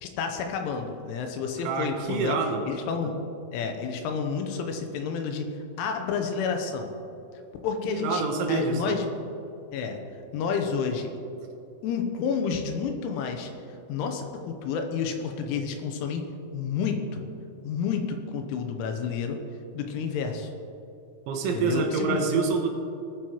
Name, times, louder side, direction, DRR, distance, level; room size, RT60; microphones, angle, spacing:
voice 1, 0.0-2.4 2.7-3.2 3.5-5.5 5.8-6.9 7.6-8.2 8.5-9.1 9.7-10.0 10.3-11.1 11.8-13.5 13.9-16.2 16.5-17.3 17.6-19.4 19.8-20.5 21.5-22.2, left 6 dB, 80° left, 4 dB, 3.2 m, -30 dB
voice 2, 1.6-2.6 7.9-9.0 21.3-22.7, right 5 dB, 75° right, 3 dB, 3.2 m, -27 dB
19.5 x 9.5 x 3.0 m, 2.8 s
omnidirectional pair, 5.8 m